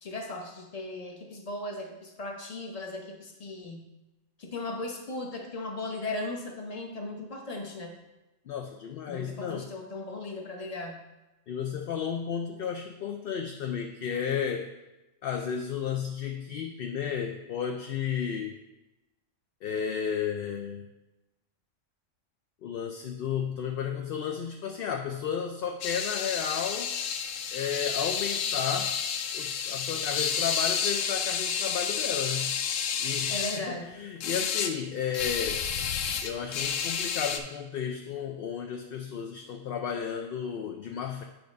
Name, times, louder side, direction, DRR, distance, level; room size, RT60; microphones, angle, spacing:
voice 1, 0.0-3.9 4.4-7.9 9.1-11.0 33.3-33.9, left 2 dB, 35° left, 1 dB, 0.9 m, -37 dB
voice 2, 8.5-9.7 11.5-14.7 15.2-18.6 19.6-20.9 22.6-26.9 27.5-29.0 29.3-32.6 33.0-35.6 36.2-41.2, left 7 dB, 60° left, 4 dB, 0.6 m, -33 dB
sound 1, 25.8-33.6 34.2-34.7 35.1-37.4, left 7 dB, 80° left, 0.9 m, -30 dB
9.0 x 3.1 x 5.1 m, 1.0 s
omnidirectional pair, 1.3 m